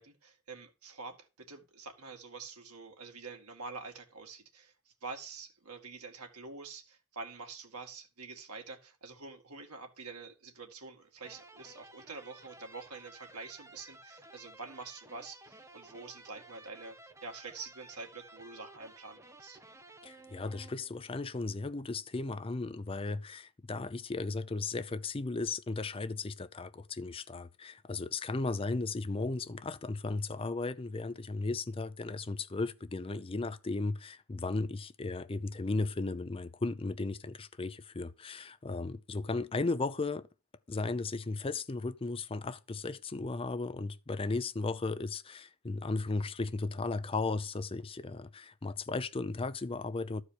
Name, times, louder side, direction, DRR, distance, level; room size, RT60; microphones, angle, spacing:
voice 1, 0.0-17.0 17.2-19.6, right 4 dB, 90° right, 2.3 m, -46 dB
sound 1, 11.2-21.2, right 2 dB, 15° right, 0.9 m, -55 dB
voice 2, 20.0-40.3 40.7-50.2, left 3 dB, 25° left, 0.5 m, -35 dB
13.5 x 4.8 x 6.5 m
head